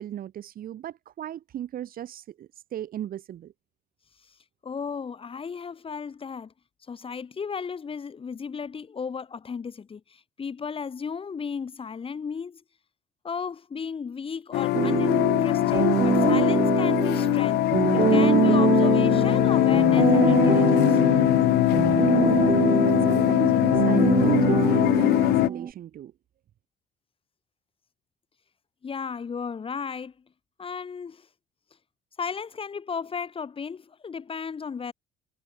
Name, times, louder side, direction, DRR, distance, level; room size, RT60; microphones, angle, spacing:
voice 1, 0.0-3.5 22.1-26.1, right 11 dB, 60° right, 3.4 m, -36 dB
voice 2, 4.6-6.5 6.9-12.6 13.2-17.6 17.9-21.0 28.8-30.1 30.6-31.3 32.2-34.9, left 6 dB, 30° left, 2.8 m, -34 dB
sound 1, 14.5-25.5, left 18 dB, 75° left, 0.5 m, -21 dB
sound 2, 14.7-25.7, right 8 dB, 35° right, 0.5 m, -24 dB
cardioid pair, 110°, 17 cm